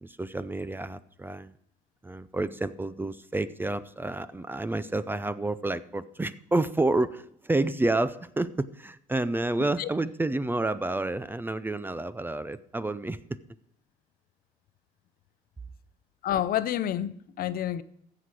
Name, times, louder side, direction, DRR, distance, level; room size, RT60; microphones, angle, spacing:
voice 1, 0.0-1.5 2.0-13.2, right 2 dB, 10° right, 0.5 m, -29 dB
voice 2, 16.2-17.8, left 11 dB, 60° left, 0.6 m, -29 dB
15.5 x 6.0 x 4.8 m
cardioid pair, 110°, 17 cm